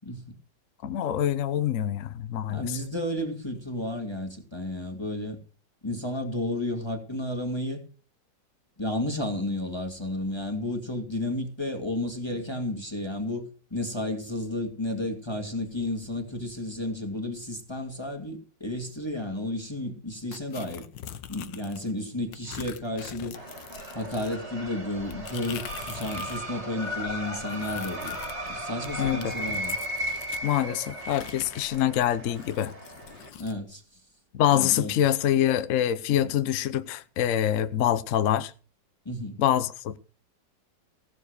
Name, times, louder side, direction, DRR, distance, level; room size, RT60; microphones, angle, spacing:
voice 1, 0.0-0.3 2.5-5.4 5.8-7.8 8.8-20.9 21.3-23.4 23.9-28.2 28.5-29.8 33.4-34.0 34.5-34.9 36.2-36.3 39.1-39.4, left 1 dB, 15° left, 2.0 m, -32 dB
voice 2, 0.8-2.8 29.0-29.3 30.4-32.7 34.3-38.5 39.4-40.0, left 11 dB, 55° left, 1.0 m, -25 dB
sound 1, 20.3-21.9 22.3-26.5 26.8-30.5 31.0-33.6, left 10 dB, 85° left, 1.6 m, -43 dB
sound 2, 23.3-33.3, equal, 35° right, 2.7 m, -36 dB
16.5 x 7.1 x 6.5 m
omnidirectional pair, 1.9 m